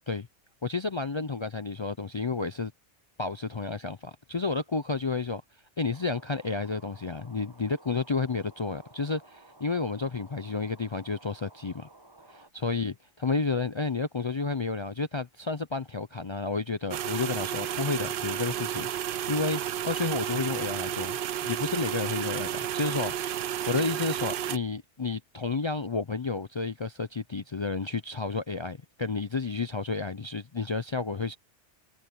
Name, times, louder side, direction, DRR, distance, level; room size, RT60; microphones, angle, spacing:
voice 1, 0.6-2.7 3.2-5.4 5.8-11.9 12.3-12.9 13.2-21.2 21.4-31.4, left 4 dB, 40° left, 0.4 m, -31 dB
sound 1, 5.9-12.5, right 2 dB, 20° right, 1.5 m, -55 dB
sound 2, 16.9-24.6, right 10 dB, 60° right, 0.6 m, -32 dB
omnidirectional pair, 1.2 m